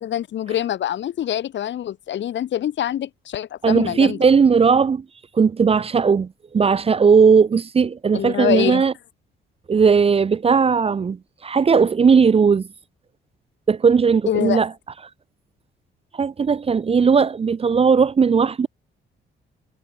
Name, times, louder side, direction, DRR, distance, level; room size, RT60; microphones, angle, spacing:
voice 1, 0.0-4.2 8.1-8.8 14.3-14.6, left 11 dB, 65° left, 1.8 m, -25 dB
voice 2, 3.6-5.0 5.3-8.9 9.7-11.2 11.4-12.7 13.7-14.7 16.2-18.7, right 5 dB, 30° right, 0.6 m, -17 dB
cardioid pair, 90°, 20 cm